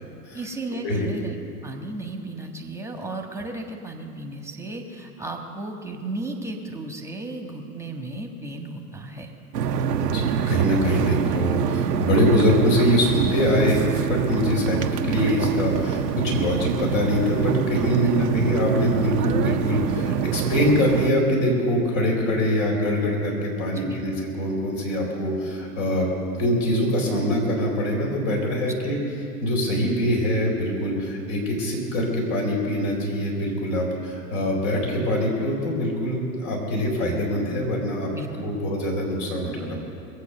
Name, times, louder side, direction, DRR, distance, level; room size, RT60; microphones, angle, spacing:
voice 1, 0.3-1.4 1.6-9.3 18.0-18.1 23.7-24.0 28.8-28.9 38.1-38.5, right 2 dB, 5° right, 3 dB, 1.5 m, -34 dB
sound 1, 9.5-21.1, right 8 dB, 85° right, 0.8 m, -25 dB
voice 2, 10.0-26.1 26.4-29.0 29.4-38.1 38.4-39.8, equal, 50° left, 0 dB, 4.6 m, -23 dB
21.5 x 8.4 x 6.8 m, 2.6 s
hypercardioid pair, 105°, 47 cm